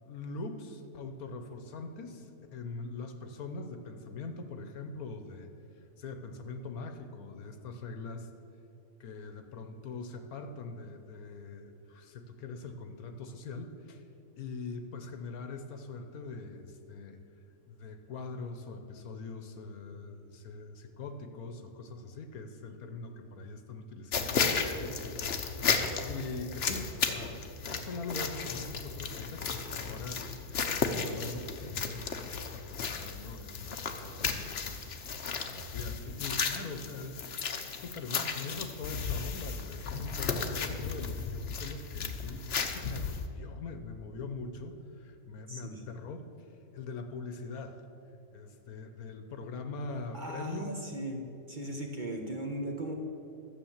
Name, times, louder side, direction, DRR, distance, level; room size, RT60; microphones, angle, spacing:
voice 1, 0.0-5.5 5.8-8.3 9.0-14.0 14.3-17.2 17.7-25.7 26.0-34.8 35.1-37.3 37.7-47.8 48.3-50.7, left 3 dB, 70° left, 7 dB, 1.3 m, -42 dB
sound 1, 24.1-43.3, left 5 dB, 50° left, 0.9 m, -34 dB
voice 2, 45.5-45.8 50.1-51.2 51.5-52.9, right 1 dB, 35° right, 1 dB, 1.1 m, -38 dB
12.0 x 7.8 x 7.2 m, 2.8 s
omnidirectional pair, 1.7 m